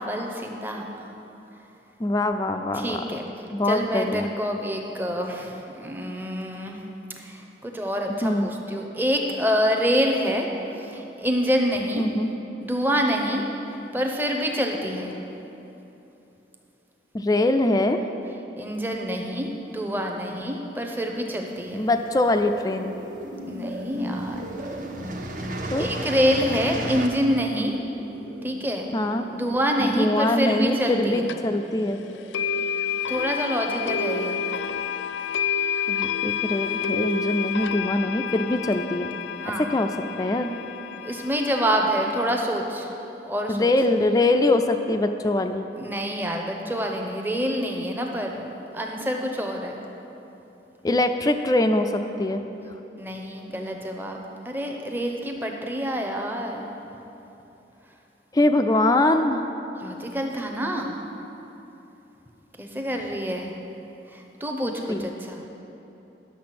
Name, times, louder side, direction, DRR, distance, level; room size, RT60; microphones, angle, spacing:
voice 1, 0.1-1.1 2.7-3.2 3.6-6.8 7.2-10.5 10.8-12.0 12.6-13.4 13.9-15.1 18.6-21.8 23.5-24.5 25.7-27.7 28.4-28.9 29.3-31.3 33.1-34.4 39.4-39.7 41.0-42.9 43.2-43.7 45.7-48.5 48.7-49.8 53.0-54.2 54.4-56.7 59.8-61.0 62.6-63.5 64.1-65.4, equal, 10° right, 2 dB, 0.8 m, -27 dB
voice 2, 2.0-3.0 3.5-4.3 8.2-8.5 11.9-12.3 17.1-18.0 21.7-23.0 25.7-25.9 28.9-29.3 29.8-32.0 35.9-39.1 39.4-40.5 43.5-45.6 50.8-52.4 58.3-59.4 64.6-65.1, left 2 dB, 20° left, 7 dB, 0.3 m, -23 dB
sound 1, 21.7-22.6 23.4-23.6 23.9-27.1, right 1 dB, 45° right, 0.8 m, -34 dB
sound 2, 22.1-32.6, right 1 dB, 65° right, 1.1 m, -39 dB
sound 3, 31.3-31.4 32.3-42.4, left 7 dB, 90° left, 0.4 m, -29 dB
10.5 x 6.7 x 5.9 m, 3.0 s
head